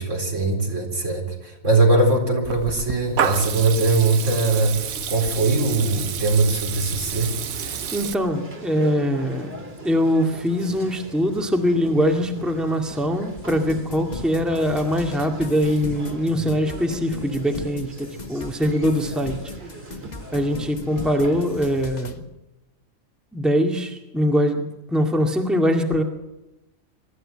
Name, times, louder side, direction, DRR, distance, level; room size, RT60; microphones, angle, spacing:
voice 1, 0.0-4.8 5.1-7.3, right 3 dB, 60° right, 2 dB, 4.6 m, -21 dB
Water tap faucet / Liquid, 2.4-8.1, right 8 dB, 85° right, 1.4 m, -29 dB
Conversation, 7.0-21.8, right 1 dB, 45° right, 2.9 m, -40 dB
voice 2, 7.9-9.5 9.8-19.4 20.3-22.2 23.3-26.0, equal, ahead, 3 dB, 2.0 m, -22 dB
sound 1, 13.4-22.2, left 3 dB, 30° left, 1.6 m, -36 dB
24.0 x 13.5 x 8.8 m, 0.97 s
omnidirectional pair, 1.4 m